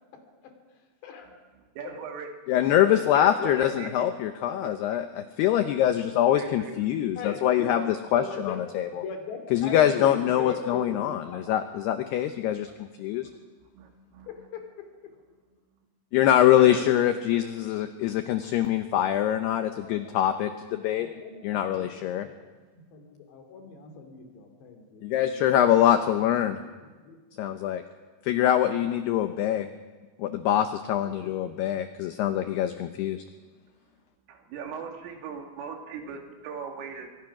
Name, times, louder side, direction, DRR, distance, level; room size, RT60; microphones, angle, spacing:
voice 1, 1.8-2.3 2.8-3.9 4.6-4.7 6.3-6.7 13.2-13.4 13.7-14.3 16.5-17.0 34.3-37.2, right 6 dB, 80° right, 3 dB, 4.9 m, -39 dB
voice 2, 2.5-8.9 9.5-12.7 13.0-13.3 16.1-21.1 21.4-22.3 25.0-26.6 27.4-27.8 28.3-29.7 30.2-33.2, left 11 dB, 80° left, 8 dB, 2.4 m, -24 dB
voice 3, 3.3-4.0 7.2-7.9 8.2-8.6 9.0-11.5 19.8-20.0 21.0-25.7 26.5-26.7 27.0-27.2 28.6-28.9 31.1-31.9 36.0-36.2, left 6 dB, 60° left, 4 dB, 4.8 m, -40 dB
25.5 x 23.0 x 6.0 m, 1.3 s
omnidirectional pair, 5.8 m